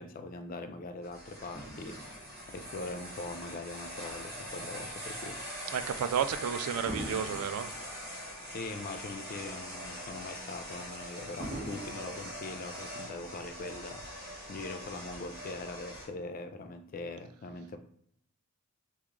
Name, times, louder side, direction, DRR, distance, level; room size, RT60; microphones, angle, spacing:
voice 1, 0.0-2.1 2.5-5.4 8.5-17.8, left 2 dB, 40° left, 8 dB, 0.3 m, -42 dB
sound 1, 1.0-16.1, equal, 45° right, 1.3 m, -43 dB
Fireworks, 1.5-4.1 4.8-5.0 6.9-9.4 9.7-9.8 11.4-13.3 14.0-14.1, right 1 dB, 25° right, 1.1 m, -45 dB
voice 2, 5.7-7.7, right 8 dB, 75° right, 13 dB, 0.3 m, -32 dB
3.0 x 2.4 x 3.5 m, 0.68 s
head